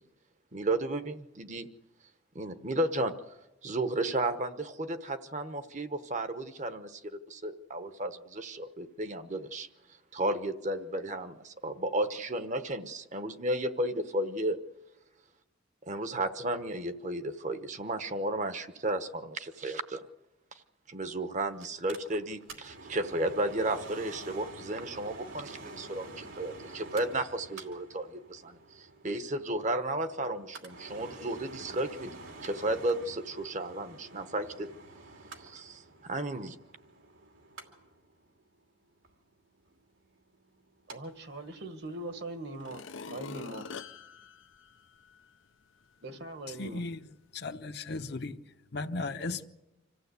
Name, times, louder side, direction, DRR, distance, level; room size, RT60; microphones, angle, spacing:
voice 1, 0.5-1.7 2.3-3.1 3.6-9.7 10.1-14.6 15.9-20.0 20.9-34.7 35.5-36.6, right 1 dB, 35° right, 10 dB, 1.0 m, -33 dB
Mechanical fan, 21.6-41.0 41.3-41.4, right 2 dB, 80° right, 2.8 m, -48 dB
voice 2, 40.9-43.7 46.0-46.8, right 2 dB, 55° right, 8 dB, 1.6 m, -41 dB
sound 1, 41.8-41.9 42.5-45.4 45.9-46.0, left 5 dB, 75° left, 0.6 m, -45 dB
voice 3, 46.6-47.0 47.3-48.4 48.7-49.5, left 3 dB, 55° left, 8 dB, 0.9 m, -36 dB
26.5 x 15.0 x 8.2 m, 1.0 s
head